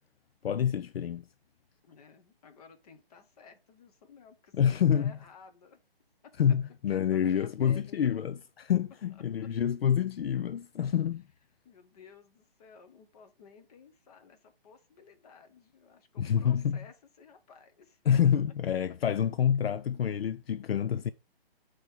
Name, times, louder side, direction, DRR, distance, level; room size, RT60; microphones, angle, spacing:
voice 1, 0.4-1.3 4.6-5.2 6.4-11.2 16.2-16.8 18.1-21.1, left 9 dB, 75° left, 0.5 m, -27 dB
voice 2, 1.8-5.8 6.9-8.3 9.4-9.5 11.6-18.0, left 5 dB, 40° left, 1.2 m, -55 dB
9.5 x 3.3 x 3.6 m
hypercardioid pair, 145°, 30 cm